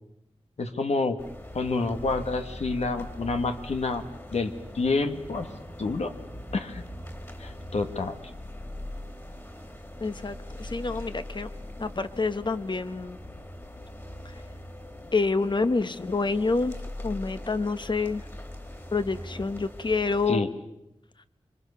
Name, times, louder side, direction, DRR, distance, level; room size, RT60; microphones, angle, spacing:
voice 1, 0.6-1.2 1.5-4.0 4.3-5.5 5.8-6.1 6.5-6.8 7.4-8.1 20.3-20.5, left 3 dB, 80° left, 7 dB, 1.6 m, -28 dB
sound 1, 1.2-20.3, left 1 dB, 20° left, 2.9 m, -41 dB
voice 2, 10.0-11.5 11.8-13.2 15.1-16.8 17.0-18.2 18.9-20.5, left 3 dB, 45° left, 11 dB, 1.1 m, -27 dB
26.0 x 23.5 x 6.9 m, 0.86 s
wide cardioid pair, 95°, 11 cm